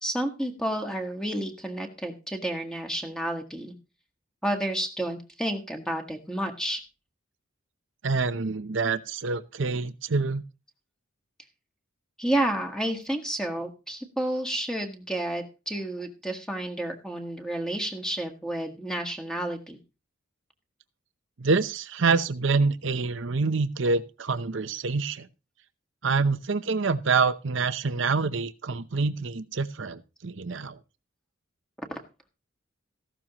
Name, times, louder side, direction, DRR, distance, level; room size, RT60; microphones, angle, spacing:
voice 1, 0.0-3.7 4.4-6.8 12.2-19.8 31.9-32.0, right 1 dB, 5° left, 1.5 m, -30 dB
voice 2, 8.0-10.4 21.4-25.3 26.0-30.8, right 4 dB, 65° right, 0.7 m, -26 dB
15.0 x 12.5 x 3.0 m
head